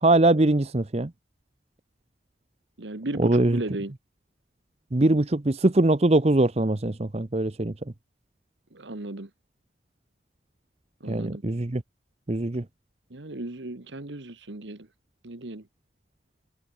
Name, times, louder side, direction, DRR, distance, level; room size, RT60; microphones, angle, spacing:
voice 1, 0.0-1.1 3.2-3.6 4.9-7.7 11.0-11.8 12.3-12.6, right 2 dB, 35° right, 0.8 m, -22 dB
voice 2, 2.8-3.9 8.7-9.3 11.0-11.4 13.1-14.9 15.2-15.7, right 2 dB, 75° right, 1.5 m, -35 dB
head